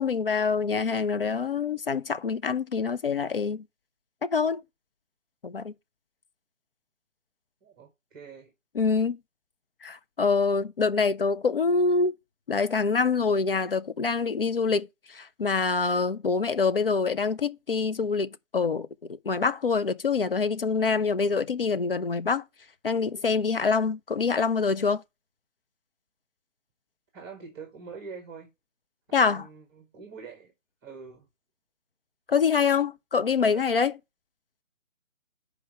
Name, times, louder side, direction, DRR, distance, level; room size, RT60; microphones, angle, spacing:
voice 1, 0.0-3.6 4.2-4.6 5.4-5.7 8.8-9.2 9.8-12.1 12.5-18.9 19.3-22.4 22.8-25.0 29.1-29.4 32.3-33.9, left 5 dB, 45° left, 0.4 m, -25 dB
voice 2, 7.6-8.5 27.1-28.5 29.1-30.5 30.8-31.3 33.4-33.7, right 5 dB, 20° right, 1.6 m, -44 dB
6.4 x 4.7 x 6.5 m
figure-of-eight pair, 155°, 39 cm